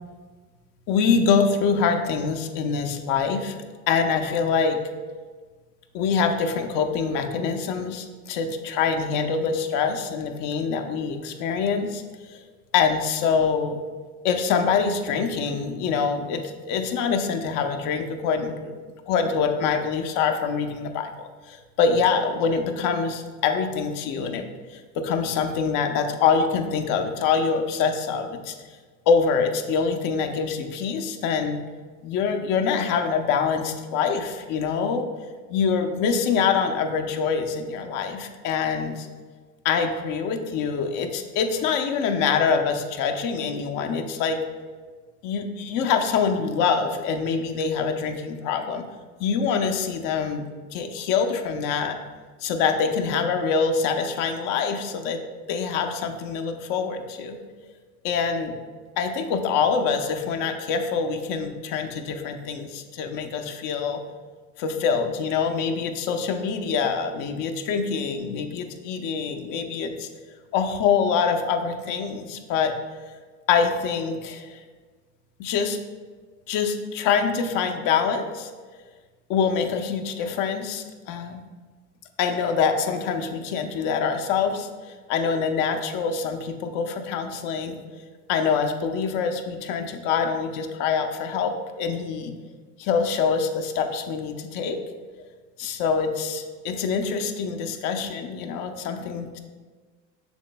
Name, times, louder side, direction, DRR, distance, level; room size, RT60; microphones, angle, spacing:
voice 1, 0.9-3.5 3.9-4.8 5.9-12.4 12.7-13.8 14.2-18.7 19.1-24.4 24.7-28.5 29.1-31.6 32.0-35.1 35.5-39.1 39.6-44.4 45.2-48.9 49.2-50.4 50.7-52.0 52.4-55.2 55.5-57.4 58.0-58.5 59.0-64.0 64.6-70.1 70.5-72.7 73.5-74.6 75.4-75.8 76.5-78.5 79.3-81.4 82.2-87.8 88.3-92.3 92.8-94.8 95.6-99.4, left 6 dB, 70° left, 5 dB, 0.7 m, -25 dB
7.1 x 6.2 x 2.2 m, 1.4 s
supercardioid pair, 85°, 33 cm